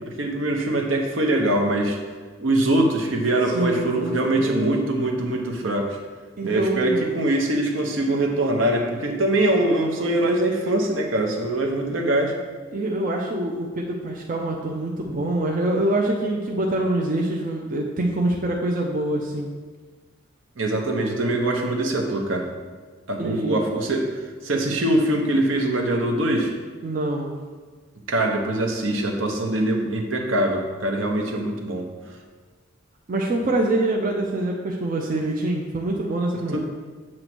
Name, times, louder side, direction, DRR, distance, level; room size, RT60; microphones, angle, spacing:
voice 1, 0.2-2.0 2.4-6.0 6.4-12.4 20.6-22.5 23.1-24.1 24.4-26.5 28.1-31.9 36.5-36.6, right 1 dB, 70° right, 1 dB, 0.9 m, -23 dB
voice 2, 3.5-4.7 6.4-7.2 12.7-19.5 23.2-23.6 26.8-27.4 33.1-36.6, right 1 dB, 45° right, -1 dB, 0.6 m, -25 dB
7.5 x 3.0 x 6.1 m, 1.5 s
head